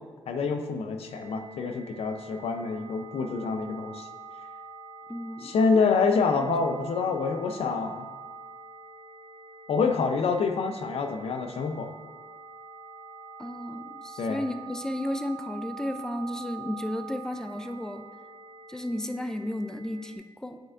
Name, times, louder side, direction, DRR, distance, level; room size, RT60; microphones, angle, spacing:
voice 1, 0.3-4.1 5.4-8.1 9.7-11.9 14.2-14.4, left 4 dB, 90° left, 6 dB, 0.5 m, -27 dB
sound 1, 1.0-20.2, right 3 dB, 60° right, 1.3 m, -45 dB
voice 2, 5.1-5.9 6.4-6.5 9.9-10.1 13.4-18.0 18.7-20.6, left 1 dB, 5° left, 8 dB, 0.4 m, -34 dB
8.9 x 4.3 x 2.4 m, 1.4 s
cardioid pair, 70°, 10 cm